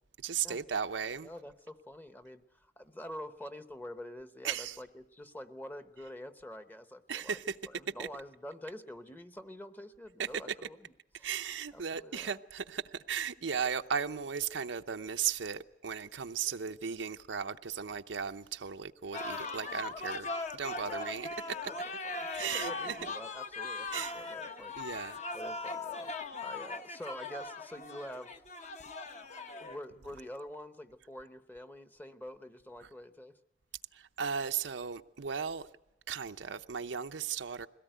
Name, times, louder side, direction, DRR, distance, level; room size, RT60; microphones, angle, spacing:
voice 1, 0.2-1.3 4.4-4.8 7.1-7.6 8.0-8.1 10.2-10.5 11.2-21.7 22.3-23.0 23.9-24.2 24.7-25.2 32.8-32.9 33.9-35.7 36.1-37.7, right 7 dB, 90° right, 0.7 m, -36 dB
voice 2, 1.2-2.4 2.8-7.4 7.6-11.3 11.7-12.3 20.9-21.1 21.7-24.7 25.3-26.1 26.4-28.4 29.6-33.4, left 1 dB, 10° left, 0.9 m, -46 dB
sound 1, 19.1-29.8, left 3 dB, 40° left, 1.1 m, -39 dB
22.0 x 17.5 x 9.2 m
head